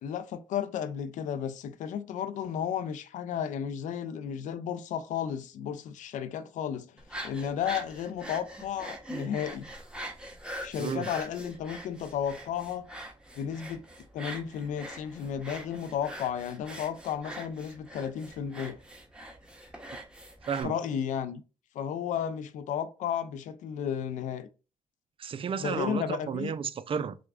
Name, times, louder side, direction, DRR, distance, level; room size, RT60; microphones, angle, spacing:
voice 1, 0.0-9.7 10.6-12.9 13.4-13.8 14.1-18.8 20.6-21.4 21.7-24.5 25.6-26.5, left 8 dB, 75° left, 0.5 m, -33 dB
sound 1, 7.0-20.6, right 1 dB, 5° right, 1.2 m, -43 dB
voice 2, 25.2-27.2, right 7 dB, 45° right, 0.4 m, -32 dB
6.0 x 2.3 x 2.3 m
supercardioid pair, 60°, 13 cm